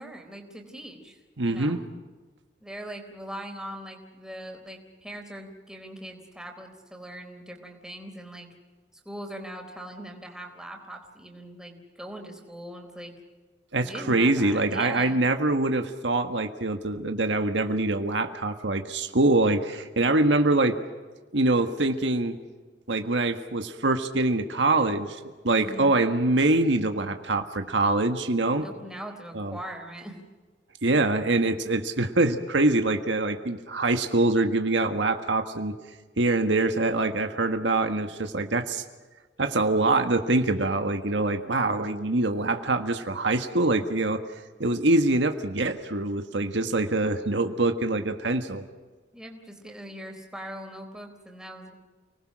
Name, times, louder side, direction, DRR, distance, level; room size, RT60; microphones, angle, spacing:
voice 1, 0.0-1.2 1.4-1.8 2.6-8.5 9.1-13.1 13.8-15.2 25.6-25.9 28.6-30.2 49.1-51.7, right 1 dB, 5° right, 2 dB, 3.9 m, -41 dB
voice 2, 1.4-1.8 13.7-20.8 21.3-22.3 22.9-28.7 29.3-29.6 30.8-35.7 36.2-38.8 39.4-44.2 44.6-48.6, right 2 dB, 80° right, 6 dB, 1.6 m, -24 dB
30.0 x 19.5 x 6.3 m, 1.3 s
head